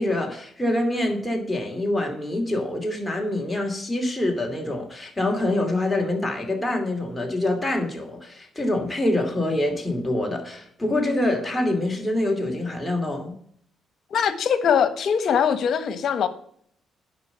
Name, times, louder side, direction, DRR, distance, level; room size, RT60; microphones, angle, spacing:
voice 1, 0.0-13.4, left 1 dB, 10° left, 2.6 m, -25 dB
voice 2, 14.1-16.3, left 7 dB, 60° left, 1.2 m, -22 dB
9.5 x 5.4 x 6.8 m
cardioid pair, 90°, 0 cm